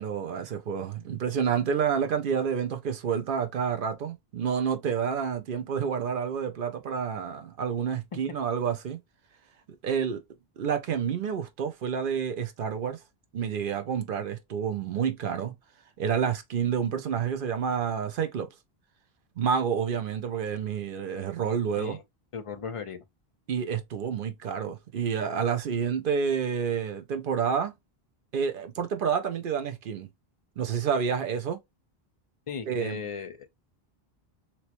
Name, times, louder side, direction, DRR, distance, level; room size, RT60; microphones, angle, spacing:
voice 1, 0.0-9.0 9.8-10.2 10.6-13.0 13.3-15.5 16.0-18.5 19.4-22.0 23.5-27.7 28.3-30.1 30.6-31.6 32.7-33.0, right 7 dB, 60° right, 0.7 m, -29 dB
voice 2, 22.3-23.0 32.5-33.5, left 6 dB, 45° left, 0.4 m, -37 dB
3.0 x 2.8 x 2.9 m
omnidirectional pair, 1.0 m